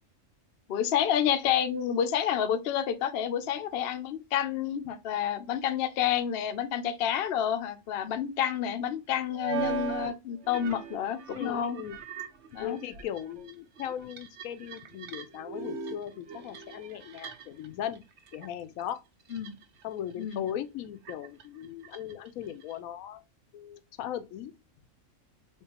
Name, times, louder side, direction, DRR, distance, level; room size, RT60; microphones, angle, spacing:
voice 1, 0.7-11.8 12.5-12.8 19.3-19.6 20.2-20.4, left 9 dB, 60° left, 0.7 m, -29 dB
sound 1, 6.5-6.6 9.3-10.1 10.4-17.7 17.9-18.5 18.8-19.8 20.2-20.5 21.0-22.8, right 5 dB, 60° right, 0.9 m, -39 dB
voice 2, 11.3-12.0 12.6-18.0 18.3-19.0 19.8-23.2 23.5-24.5, left 10 dB, 85° left, 1.0 m, -38 dB
3.6 x 3.1 x 2.8 m
omnidirectional pair, 1.4 m